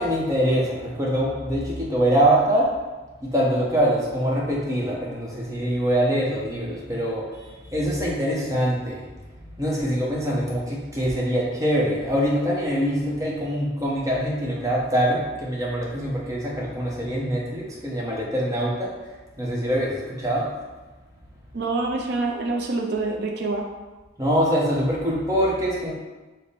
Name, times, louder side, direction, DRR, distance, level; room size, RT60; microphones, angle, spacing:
voice 1, 0.0-2.7 3.2-9.0 9.6-18.9 19.4-20.5 24.2-25.9, equal, 15° right, -4 dB, 0.8 m, -24 dB
voice 2, 21.5-23.7, right 3 dB, 55° right, 1 dB, 0.4 m, -26 dB
5.1 x 2.1 x 4.1 m, 1.2 s
head